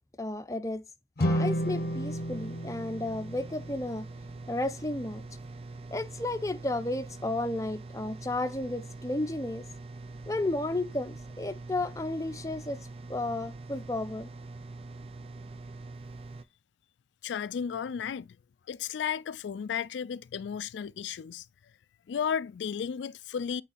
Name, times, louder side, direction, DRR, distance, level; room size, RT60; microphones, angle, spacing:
voice 1, 0.2-0.8 1.2-4.1 4.5-5.2 5.9-9.6 10.3-12.8 13.1-14.3, left 2 dB, 20° left, 0.7 m, -33 dB
sound 1, 1.2-4.4, equal, 55° left, 0.7 m, -32 dB
sound 2, 1.3-16.4, right 3 dB, 35° right, 0.6 m, -44 dB
voice 2, 17.2-18.4 18.7-21.5 22.1-23.6, left 7 dB, 85° left, 0.3 m, -33 dB
8.5 x 3.8 x 4.1 m
head